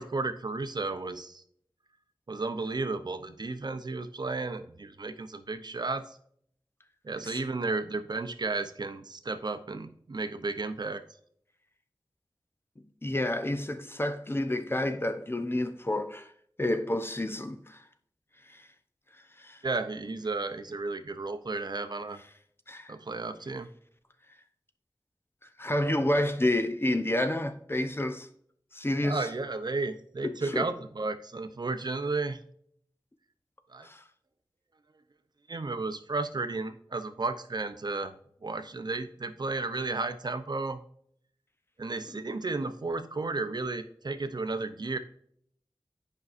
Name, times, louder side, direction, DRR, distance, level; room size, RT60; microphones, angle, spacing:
voice 1, 0.0-1.4 2.3-6.0 7.0-11.0 19.6-22.2 22.9-23.7 29.0-32.4 33.7-33.9 35.5-38.1 38.4-40.8 41.8-45.0, right 3 dB, 55° right, 0.7 m, -33 dB
voice 2, 13.0-16.3 16.6-17.8 18.5-18.7 19.4-19.6 22.7-22.9 25.6-28.3 28.7-29.3 30.2-30.7 33.8-34.0 42.1-42.2, left 1 dB, 30° left, 0.7 m, -29 dB
8.6 x 5.3 x 2.6 m
wide cardioid pair, 70°, 8 cm